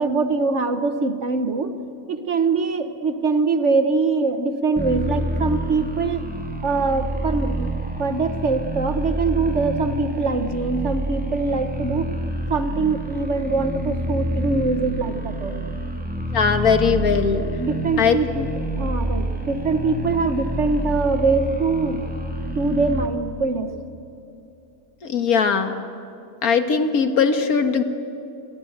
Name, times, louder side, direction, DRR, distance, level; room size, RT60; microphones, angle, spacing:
voice 1, 0.0-1.7 2.1-6.2 6.6-7.7 8.0-12.1 12.5-15.7 17.6-18.3 18.5-22.0 22.5-23.8, right 4 dB, 50° right, 9 dB, 1.4 m, -23 dB
sound 1, 4.8-23.1, right 1 dB, 5° right, 1.7 m, -28 dB
voice 2, 16.3-17.5 18.0-18.5 25.0-25.8 26.4-27.8, left 6 dB, 70° left, 8 dB, 1.9 m, -20 dB
28.0 x 22.0 x 8.1 m, 2.7 s
omnidirectional pair, 1.6 m